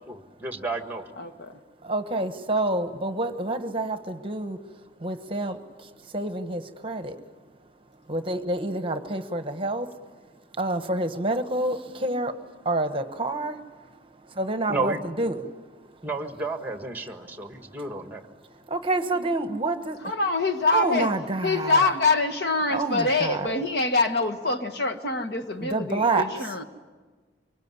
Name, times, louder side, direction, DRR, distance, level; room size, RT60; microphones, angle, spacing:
voice 1, 0.1-1.0 14.7-15.0 16.0-18.2, right 3 dB, 10° right, 6 dB, 1.7 m, -32 dB
voice 2, 1.9-4.6 5.0-5.6 6.1-7.2 8.1-9.9 10.6-12.3 12.6-13.6 14.4-15.4 18.7-20.0 20.7-21.8 22.7-23.5 25.6-26.5, right 2 dB, 30° right, 9 dB, 1.2 m, -27 dB
voice 3, 20.0-21.1 21.4-26.6, left 3 dB, 65° left, 6 dB, 1.6 m, -25 dB
25.0 x 23.0 x 9.7 m, 1.4 s
head